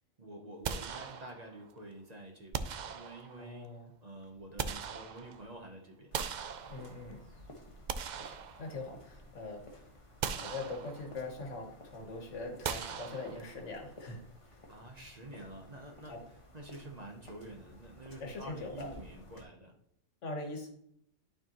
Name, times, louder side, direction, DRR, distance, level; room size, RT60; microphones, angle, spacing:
voice 1, 0.2-6.1 14.7-16.2 16.5-19.8, right 1 dB, 35° right, 2 dB, 0.9 m, -48 dB
sound 1, 0.6-1.7 2.5-3.6 4.2-5.6 6.1-7.2 7.7-9.1 9.5-9.7 10.2-11.3 12.6-13.8, right 7 dB, 65° right, 0.4 m, -40 dB
voice 2, 3.4-3.9 6.7-7.2 8.6-9.6 10.4-14.2 18.2-18.9 20.2-20.7, left 3 dB, 75° left, 3 dB, 1.5 m, -42 dB
sound 2, 6.1-19.4, left 1 dB, 25° left, 1.1 m, -55 dB
11.5 x 4.5 x 3.0 m, 0.72 s
omnidirectional pair, 1.3 m